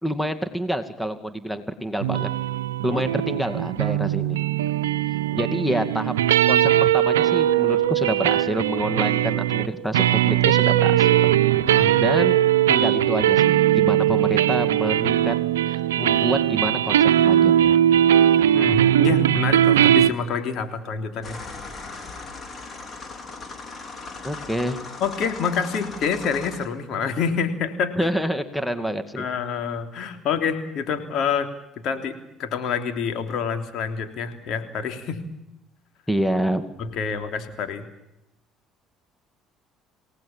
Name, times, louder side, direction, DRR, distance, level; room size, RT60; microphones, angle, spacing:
voice 1, 0.0-2.3 2.8-4.4 5.3-6.1 6.4-11.6 12.0-12.4 12.7-15.3 15.7-17.8 19.1-19.2 24.2-24.8 28.0-29.3 36.1-36.6, equal, 5° left, 10 dB, 2.3 m, -27 dB
sound 1, 2.0-20.1, right 11 dB, 90° right, 0.8 m, -20 dB
voice 2, 18.5-21.4 25.0-28.0 29.2-31.5 31.8-35.2 36.8-37.9, left 6 dB, 60° left, 7 dB, 3.4 m, -27 dB
sound 2, 21.2-26.7, left 3 dB, 40° left, 4.8 m, -38 dB
28.5 x 18.0 x 7.4 m, 0.86 s
hypercardioid pair, 60°, 0 cm